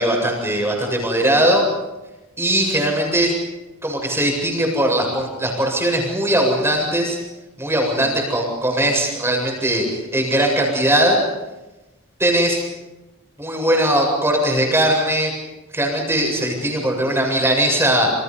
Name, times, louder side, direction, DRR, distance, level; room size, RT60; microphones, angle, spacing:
voice 1, 0.0-1.7 2.4-3.3 3.8-7.2 7.6-11.2 12.2-12.6 13.4-15.3 15.7-18.1, right 1 dB, 10° right, 1 dB, 7.7 m, -19 dB
29.0 x 27.5 x 5.6 m, 1.0 s
head